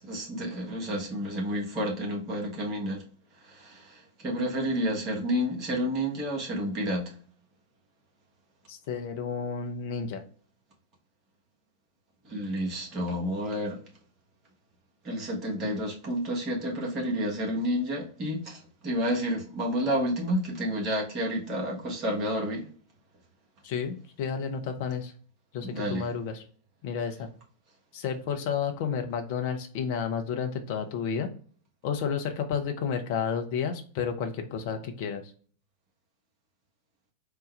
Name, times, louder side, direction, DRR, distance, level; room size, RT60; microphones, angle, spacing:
voice 1, 0.0-3.0 3.4-7.1 12.2-13.8 15.0-22.7 25.6-26.1, equal, 35° right, 1.4 m, -30 dB
voice 2, 8.7-10.2 23.6-25.1 25.5-26.4 26.8-27.3 27.9-31.3 31.8-35.2, left 6 dB, 50° left, 0.6 m, -31 dB
3.9 x 2.2 x 3.3 m
figure-of-eight pair, 90°, 0 cm